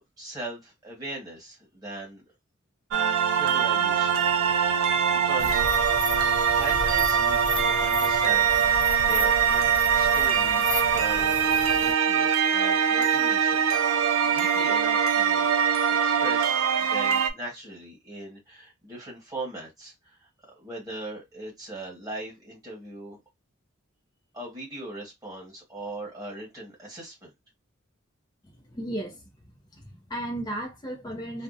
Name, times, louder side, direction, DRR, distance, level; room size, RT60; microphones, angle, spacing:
voice 1, 0.2-2.2 3.4-4.2 5.1-5.6 6.5-15.5 16.0-20.3 20.5-23.2 24.3-27.3, right 2 dB, 15° right, 1.3 m, -40 dB
sound 1, 2.9-17.3, right 7 dB, 75° right, 0.4 m, -23 dB
sound 2, 5.4-11.9, left 3 dB, 65° left, 0.5 m, -35 dB
voice 2, 28.5-31.4, right 1 dB, 20° left, 0.4 m, -35 dB
2.5 x 2.1 x 2.5 m
head